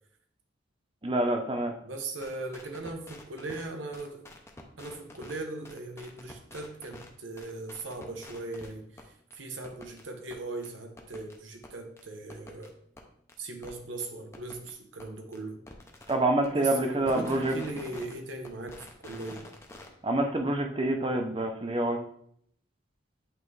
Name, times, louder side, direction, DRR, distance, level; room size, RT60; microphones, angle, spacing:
voice 1, 1.0-1.7 16.1-17.6 20.0-22.0, right 1 dB, 25° right, 4 dB, 0.6 m, -27 dB
voice 2, 1.8-4.2 4.8-12.8 13.4-15.6 16.5-19.4, right 2 dB, 90° right, 5 dB, 0.8 m, -39 dB
sound 1, 2.2-3.7 3.9-5.4 5.6-7.1 7.4-8.7 9.0-9.1 9.3-9.4 9.6-10.0 10.3-10.4 10.6-10.7 11.0-11.4 11.6-11.7 12.0-12.1 12.3-12.7 13.0-13.1 13.3-13.4 13.6-13.7 14.0-14.1 14.3-14.7 15.0-15.1 15.3-15.4 15.7-16.1 16.4-16.5 16.8-18.2 18.4-19.9, left 1 dB, 15° left, 0.6 m, -47 dB
8.4 x 3.5 x 3.2 m, 0.69 s
head